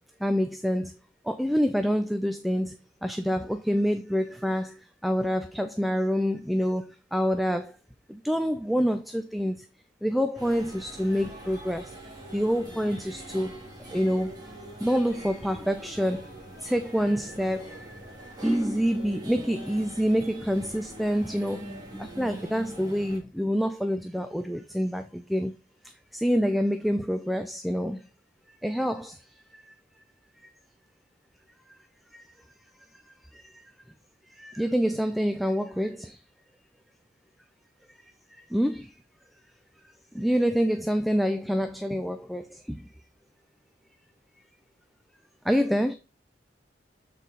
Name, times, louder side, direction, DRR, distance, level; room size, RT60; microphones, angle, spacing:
voice 1, 0.2-0.9 1.3-2.7 3.0-4.7 5.0-6.8 7.1-7.7 8.2-9.6 10.0-11.8 12.3-13.6 13.9-14.3 14.8-16.2 16.6-17.8 18.4-21.6 22.2-25.5 26.2-28.0 28.6-29.1 34.4-36.1 38.5-38.8 40.2-42.4 45.5-45.9, equal, ahead, 0.4 m, -26 dB
sound 1, 10.4-23.2, right 1 dB, 20° right, 1.9 m, -43 dB
8.2 x 4.1 x 3.9 m
head